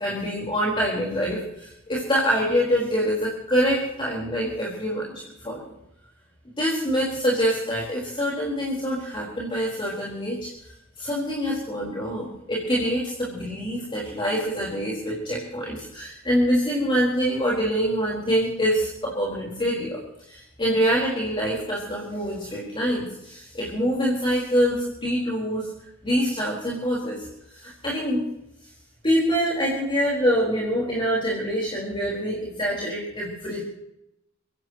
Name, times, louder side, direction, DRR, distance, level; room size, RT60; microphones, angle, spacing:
voice 1, 0.0-5.1 5.4-5.6 6.6-10.4 11.0-20.0 20.3-25.7 26.0-27.2 27.5-28.2 29.0-33.6, equal, 25° left, -5 dB, 4.5 m, -25 dB
27.0 x 16.0 x 3.1 m, 0.83 s
head